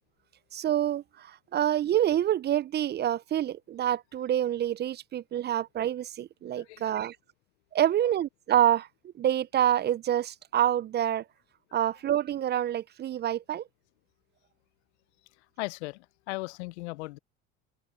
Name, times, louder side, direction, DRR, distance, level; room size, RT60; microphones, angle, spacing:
voice 1, 0.5-7.2 7.7-8.9 9.2-11.2 11.7-13.6, right 11 dB, 30° right, 0.4 m, -27 dB
voice 2, 6.6-6.9 15.6-17.2, left 23 dB, 80° left, 0.6 m, -37 dB
hypercardioid pair, 70°, 33 cm